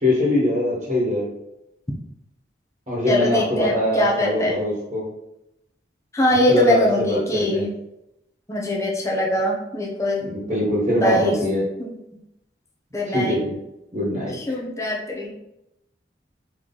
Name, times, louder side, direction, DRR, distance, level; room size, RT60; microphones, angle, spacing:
voice 1, 0.0-1.3 2.9-5.0 6.5-7.6 10.2-11.6 13.0-13.5 13.9-14.4, left 1 dB, 35° right, -5 dB, 1.3 m, -22 dB
voice 2, 3.1-4.5 6.1-7.7 8.5-10.2 11.0-11.4 11.8-11.9 12.9-13.4 14.3-15.3, left 1 dB, 15° left, -2 dB, 0.7 m, -22 dB
4.0 x 3.1 x 3.8 m, 0.87 s
head